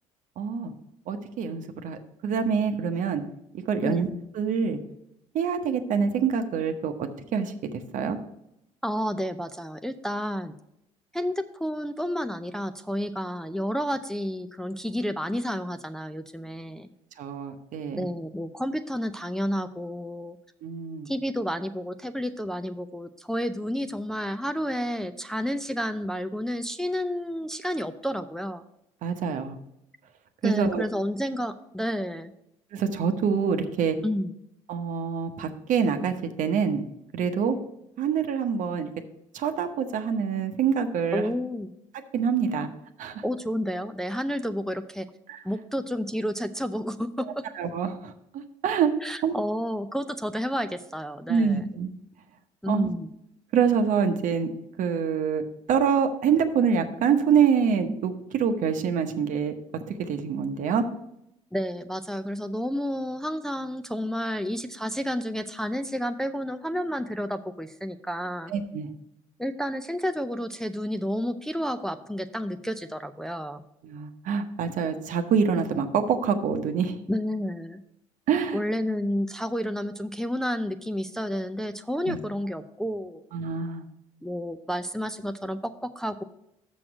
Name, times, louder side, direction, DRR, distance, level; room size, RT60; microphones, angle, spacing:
voice 1, 0.4-0.7 1.1-3.2 3.7-4.1 4.4-4.8 5.3-8.2 17.2-18.1 20.6-21.1 29.0-29.6 30.4-30.8 32.7-34.0 34.7-36.8 37.1-37.6 38.0-38.9 39.3-41.2 42.1-42.7 43.0-43.2 45.3-45.4 47.6-48.9 49.2-49.4 51.3-51.9 52.7-52.9 53.5-54.5 54.8-55.4 55.7-59.5 59.9-60.8 68.5-68.9 73.8-77.0 78.3-78.6 82.1-82.2 83.3-83.8, right 6 dB, 60° right, 7 dB, 0.9 m, -26 dB
voice 2, 8.8-10.5 11.1-16.9 18.0-20.4 21.1-28.6 30.4-32.3 34.0-34.3 41.1-41.7 43.2-45.1 45.4-47.4 49.0-51.7 52.6-53.1 61.5-68.5 69.4-73.6 77.1-77.8 78.5-83.2 84.2-86.2, equal, 5° left, 8 dB, 0.5 m, -30 dB
6.3 x 6.1 x 6.0 m, 0.82 s
hypercardioid pair, 65°, 15 cm